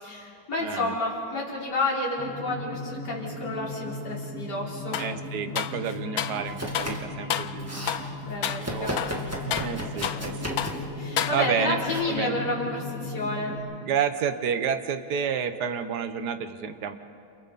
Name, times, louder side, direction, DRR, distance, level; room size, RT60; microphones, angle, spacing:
voice 1, 0.0-5.0 8.3-9.0 9.8-10.2 11.0-13.6, left 2 dB, 50° left, -5 dB, 4.4 m, -30 dB
voice 2, 0.6-0.9 5.0-10.6 11.3-11.8 12.0-12.4 13.8-16.9, right 7 dB, 55° right, 9 dB, 1.5 m, -30 dB
sound 1, 2.2-13.6, left 2 dB, 70° right, 6.5 m, -37 dB
sound 2, 4.9-5.2 5.6-6.4 6.7-7.0 7.3-7.6 7.9-8.1 8.4-8.7 9.0-10.3 10.6-10.8 11.2-11.7, left 10 dB, 70° left, 0.9 m, -30 dB
Domestic sounds home sounds, 6.4-7.1 7.4-8.0 8.6-10.9 11.8-12.0, equal, 5° right, 2.0 m, -35 dB
30.0 x 28.5 x 4.2 m, 2.4 s
omnidirectional pair, 2.2 m